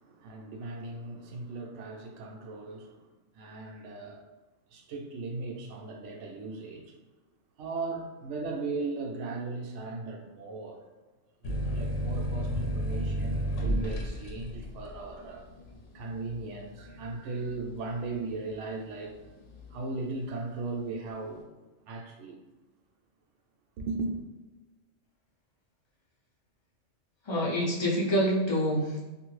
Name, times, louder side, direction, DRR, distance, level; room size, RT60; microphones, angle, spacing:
voice 1, 0.0-3.1 3.3-4.2 4.7-7.0 7.6-10.8 11.4-15.4 15.9-19.2 19.7-21.5 21.8-22.4 23.8-24.1, right 3 dB, 70° right, 2 dB, 0.8 m, -37 dB
sound 1, 11.4-18.7 19.1-19.9, right 1 dB, 70° left, 0.9 m, -33 dB
voice 2, 27.2-29.0, equal, 35° left, -5 dB, 0.4 m, -26 dB
2.7 x 2.5 x 3.1 m, 1.2 s
omnidirectional pair, 1.3 m